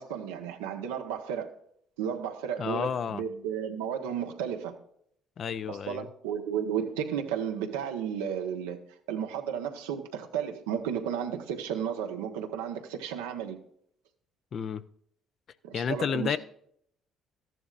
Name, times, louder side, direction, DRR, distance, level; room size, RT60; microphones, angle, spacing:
voice 1, 0.0-1.5 2.0-4.7 5.7-8.8 9.1-13.6 15.6-16.4, right 8 dB, 90° right, 1.2 m, -33 dB
voice 2, 2.6-3.2 5.4-6.1 14.5-14.8 15.7-16.4, left 7 dB, 55° left, 0.6 m, -31 dB
14.0 x 10.5 x 2.5 m
supercardioid pair, 65°, 0 cm